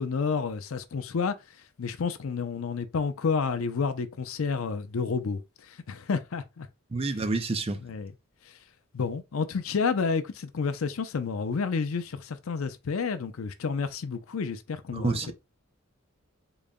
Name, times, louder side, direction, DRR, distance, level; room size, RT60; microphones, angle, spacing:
voice 1, 0.0-6.7 7.8-8.1 8.5-8.6 8.9-15.3, left 5 dB, 75° left, 0.5 m, -30 dB
voice 2, 6.9-7.8 14.9-15.3, right 3 dB, 30° right, 0.5 m, -28 dB
3.9 x 2.1 x 3.6 m
head